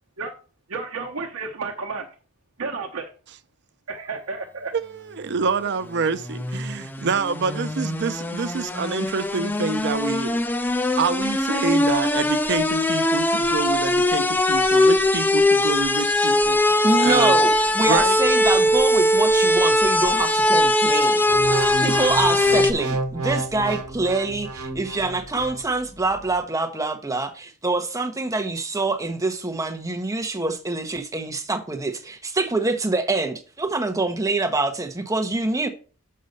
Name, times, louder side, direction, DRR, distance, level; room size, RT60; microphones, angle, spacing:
voice 1, 0.7-2.1 2.6-3.1 3.9-4.7, right 4 dB, 70° right, 0.9 m, -31 dB
voice 2, 4.7-10.4 11.0-17.4 17.9-18.2, right 4 dB, 55° right, 0.5 m, -27 dB
sound 1, 6.0-22.7, left 1 dB, 10° left, 0.4 m, -21 dB
voice 3, 16.8-21.2 21.5-35.7, right 3 dB, 15° right, 0.9 m, -25 dB
sound 2, 21.3-25.6 26.1-26.4, right 2 dB, 90° right, 1.2 m, -29 dB
6.5 x 5.4 x 5.3 m
head